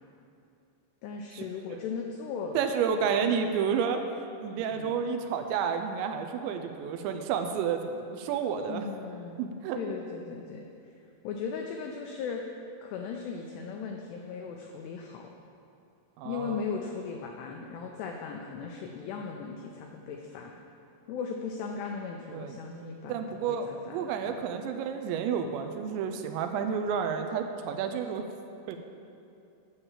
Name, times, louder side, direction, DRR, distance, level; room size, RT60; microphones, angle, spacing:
voice 1, 1.0-2.7 4.7-5.0 8.7-9.5 9.8-10.7 11.2-12.5 12.8-15.4 16.2-20.5 21.1-23.2 23.5-24.4, left 5 dB, 85° left, 2 dB, 2.4 m, -37 dB
voice 2, 2.5-8.9 9.4-10.0 16.2-16.6 22.3-22.6 23.1-28.3 28.7-28.8, right 7 dB, 85° right, 6 dB, 2.7 m, -30 dB
9.8 x 7.0 x 7.2 m, 2.7 s
omnidirectional pair, 5.6 m